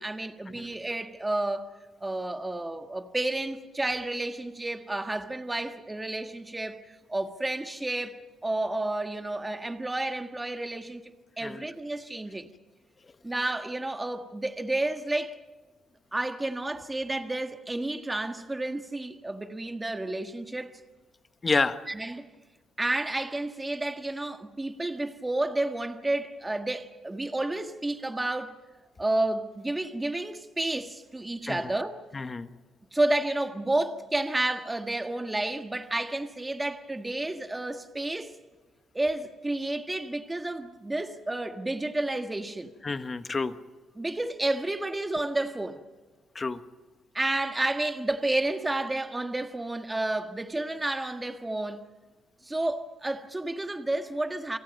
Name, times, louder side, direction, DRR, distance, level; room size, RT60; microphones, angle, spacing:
voice 1, 0.0-1.7 2.0-11.0 11.4-12.5 13.2-15.4 16.1-20.7 21.9-22.3 22.8-28.5 29.0-32.0 32.9-38.4 38.9-42.7 44.0-45.8 47.1-51.8 52.4-54.6, right 2 dB, 15° right, 1.6 m, -31 dB
voice 2, 21.4-21.8 31.5-31.7 32.1-32.5 42.8-43.5 46.3-46.6, left 4 dB, 30° left, 1.3 m, -29 dB
29.0 x 24.5 x 5.4 m
cardioid pair, 90°, 0 cm